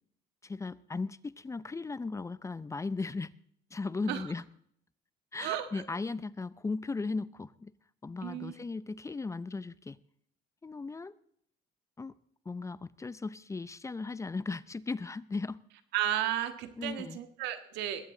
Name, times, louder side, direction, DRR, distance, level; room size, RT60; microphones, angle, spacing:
voice 1, 0.4-3.3 3.7-4.4 5.3-7.7 8.0-10.0 10.6-11.1 12.0-12.1 12.5-15.6 16.8-17.2, left 3 dB, 15° left, 18 dB, 0.5 m, -37 dB
voice 2, 5.4-5.9 8.2-8.5 15.9-18.1, right 12 dB, 90° right, 9 dB, 1.6 m, -34 dB
21.0 x 16.5 x 3.8 m, 0.68 s
cardioid pair, 110°, 17 cm